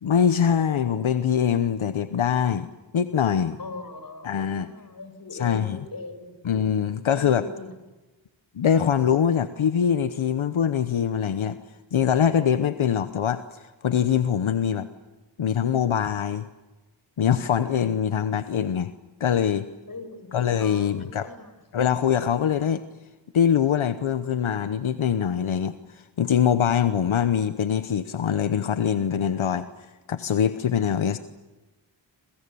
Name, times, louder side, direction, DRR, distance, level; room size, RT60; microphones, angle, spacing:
voice 1, 0.0-2.7 2.9-3.6 4.2-4.7 5.3-5.8 6.4-7.5 8.5-11.6 11.9-14.9 15.4-16.5 17.2-18.9 19.2-19.7 20.3-21.3 21.7-22.8 23.3-29.7 30.1-31.2, left 8 dB, 90° left, 10 dB, 1.0 m, -23 dB
voice 2, 3.6-6.4 7.1-7.7 19.9-21.5, left 3 dB, 45° left, 9 dB, 6.3 m, -40 dB
27.5 x 26.5 x 7.0 m, 1.1 s
cardioid pair, 50°, 47 cm